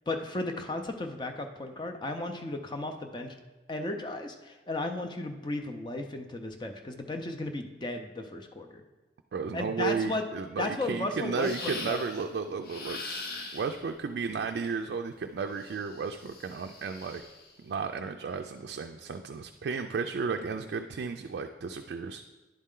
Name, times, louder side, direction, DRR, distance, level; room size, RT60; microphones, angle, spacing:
voice 1, 0.1-3.3 3.7-8.8 9.5-10.2 10.6-12.0, left 2 dB, 25° left, 5 dB, 0.5 m, -35 dB
voice 2, 9.3-13.0 13.5-17.2 17.6-22.2, right 5 dB, 70° right, 4 dB, 0.3 m, -33 dB
sound 1, 11.4-12.2 12.6-13.9 15.6-17.5, left 3 dB, 60° left, 0.8 m, -41 dB
10.5 x 4.2 x 3.7 m, 1.1 s
head